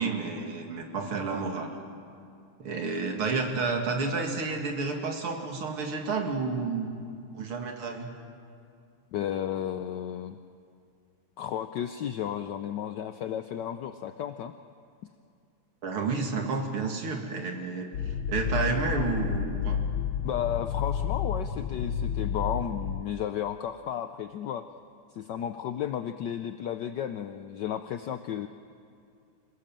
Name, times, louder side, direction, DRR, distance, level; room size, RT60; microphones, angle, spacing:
voice 1, 0.0-1.7 2.6-6.9 7.3-8.1 15.8-17.9 18.3-19.8, right 4 dB, 90° right, 2 dB, 3.1 m, -30 dB
voice 2, 9.1-10.4 11.4-14.5 20.2-24.6 25.1-28.5, left 10 dB, 65° left, 9 dB, 1.2 m, -33 dB
sound 1, 17.9-23.0, left 7 dB, 90° left, 1.7 m, -30 dB
27.0 x 18.0 x 7.5 m, 2.4 s
omnidirectional pair, 2.3 m